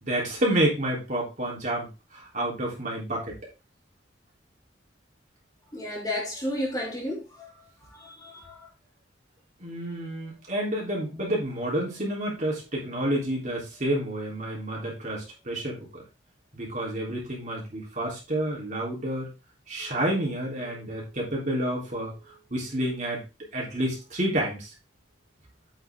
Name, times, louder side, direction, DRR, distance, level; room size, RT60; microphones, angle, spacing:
voice 1, 0.0-1.9 2.1-3.3 9.6-16.0 16.5-19.3 19.7-22.1 22.5-23.2 23.5-24.7, right 1 dB, 40° right, 3.5 m, -29 dB
voice 2, 5.7-7.2 7.9-8.6, left 1 dB, 20° left, 2.4 m, -32 dB
8.2 x 6.0 x 3.7 m
head